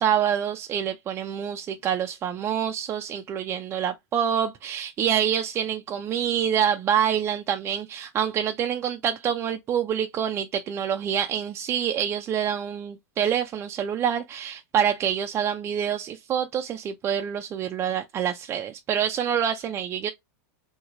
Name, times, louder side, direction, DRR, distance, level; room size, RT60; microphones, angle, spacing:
voice 1, 0.0-20.1, right 9 dB, 25° right, 0.4 m, -26 dB
3.0 x 2.0 x 3.7 m
supercardioid pair, 125°, 9 cm